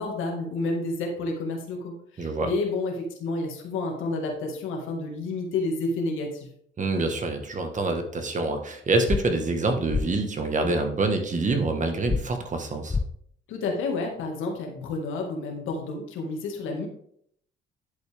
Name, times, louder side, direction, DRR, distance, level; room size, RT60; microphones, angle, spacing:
voice 1, 0.0-6.5 13.5-16.9, left 3 dB, 90° left, 2 dB, 1.8 m, -30 dB
voice 2, 2.2-2.5 6.8-13.0, right 3 dB, 40° right, 5 dB, 1.5 m, -26 dB
sound 1, 9.1-9.2 9.9-10.0 12.1-12.2 12.9-13.1, left 4 dB, 15° left, 0.4 m, -25 dB
10.5 x 5.3 x 3.5 m, 0.67 s
cardioid pair, 90°, 20 cm